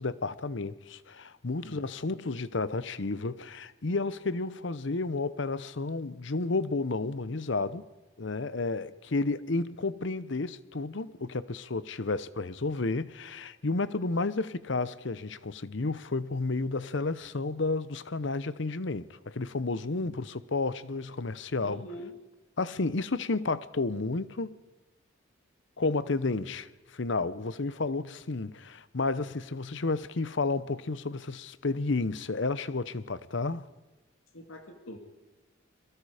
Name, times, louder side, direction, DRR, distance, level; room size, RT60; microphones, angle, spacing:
voice 1, 0.0-7.9 8.2-21.8 22.6-24.6 25.8-33.7, left 3 dB, 60° left, 0.8 m, -31 dB
voice 2, 21.6-22.1 34.3-35.0, equal, 80° left, 2.2 m, -44 dB
29.0 x 22.5 x 5.0 m
head